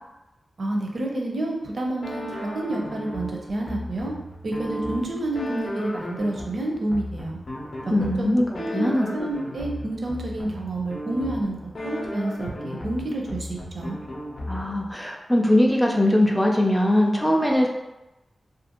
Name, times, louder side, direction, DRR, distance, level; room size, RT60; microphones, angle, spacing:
voice 1, 0.6-4.1 4.4-7.4 7.8-7.9 8.2-8.3 8.6-14.0, right 1 dB, 60° right, 0 dB, 0.5 m, -29 dB
sound 1, 2.0-14.9, left 1 dB, 65° left, 0.6 m, -35 dB
voice 2, 7.9-9.1 14.5-17.7, left 1 dB, ahead, -1 dB, 0.3 m, -21 dB
2.4 x 2.4 x 2.8 m, 0.99 s
wide cardioid pair, 135°, 0 cm